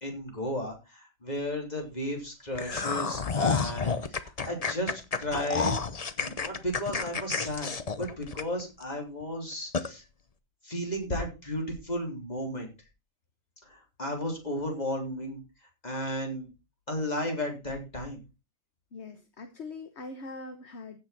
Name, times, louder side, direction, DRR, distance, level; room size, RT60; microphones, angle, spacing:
voice 1, 0.0-5.8 6.2-10.0 10.6-12.7 13.7-15.4 15.8-16.5 16.9-18.2, left 1 dB, 20° left, 2 dB, 3.6 m, -34 dB
sound 1, 2.5-8.8 9.2-9.3 9.7-9.9, left 5 dB, 85° left, 0.3 m, -30 dB
voice 2, 18.9-21.0, left 3 dB, 40° left, 8 dB, 1.3 m, -42 dB
15.5 x 6.9 x 4.2 m, 0.26 s
omnidirectional pair, 2.1 m